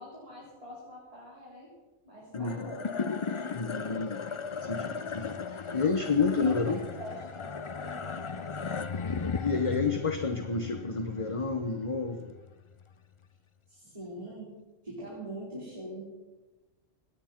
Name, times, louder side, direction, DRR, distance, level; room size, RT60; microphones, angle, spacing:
voice 1, 0.0-1.7 2.0-2.9 6.3-8.9 13.7-14.5 14.8-16.1, right 1 dB, 25° right, -8 dB, 4.5 m, -44 dB
sound 1, 2.3-12.8, left 5 dB, 50° left, 0.3 m, -37 dB
voice 2, 2.3-2.7 3.5-5.4 5.7-6.8 9.4-12.3, left 4 dB, 30° left, 5 dB, 0.8 m, -30 dB
26.0 x 9.8 x 4.4 m, 1.1 s
omnidirectional pair, 1.4 m